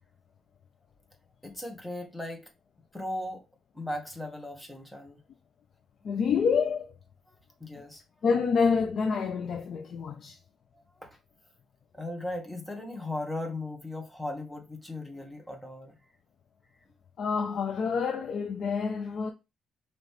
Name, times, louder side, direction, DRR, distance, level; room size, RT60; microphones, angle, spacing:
voice 1, 1.4-2.5 2.9-3.4 3.7-5.2 7.3-7.4 7.6-8.0 10.7-11.2 11.9-15.9, left 1 dB, 5° left, 1.5 m, -37 dB
voice 2, 6.0-6.9 8.2-10.3 17.2-19.3, left 5 dB, 60° left, 0.6 m, -27 dB
5.2 x 3.1 x 3.2 m
cardioid pair, 90°, 0 cm